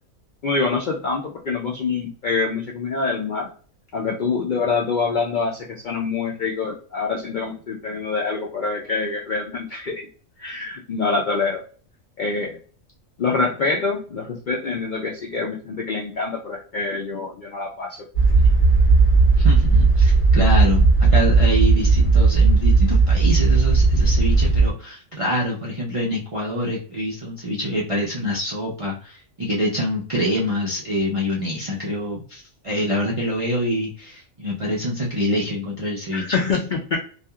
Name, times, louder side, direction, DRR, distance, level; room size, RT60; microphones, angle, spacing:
voice 1, 0.4-3.5 3.9-10.1 10.4-11.6 12.2-12.6 13.2-18.1 36.1-37.0, left 4 dB, 70° left, -1 dB, 0.4 m, -25 dB
sound 1, 18.1-24.7, right 3 dB, 40° left, 1.1 m, -16 dB
voice 2, 19.3-36.4, equal, 55° right, -5 dB, 0.3 m, -25 dB
2.8 x 2.4 x 2.3 m, 0.41 s
omnidirectional pair, 1.4 m